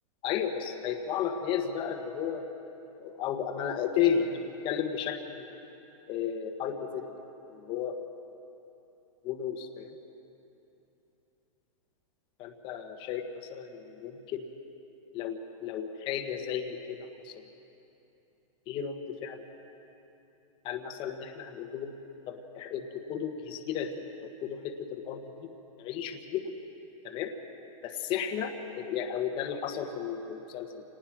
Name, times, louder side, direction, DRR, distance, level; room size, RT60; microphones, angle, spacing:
voice 1, 0.2-2.5 3.0-5.5 6.1-7.0 7.5-8.0 9.2-10.0 12.4-14.5 15.1-17.4 18.7-19.4 20.6-21.9 22.3-25.5 25.8-26.5 27.0-27.3 27.8-30.8, left 8 dB, 30° left, 4 dB, 1.3 m, -33 dB
27.0 x 19.0 x 6.2 m, 3.0 s
supercardioid pair, 160°, 18 cm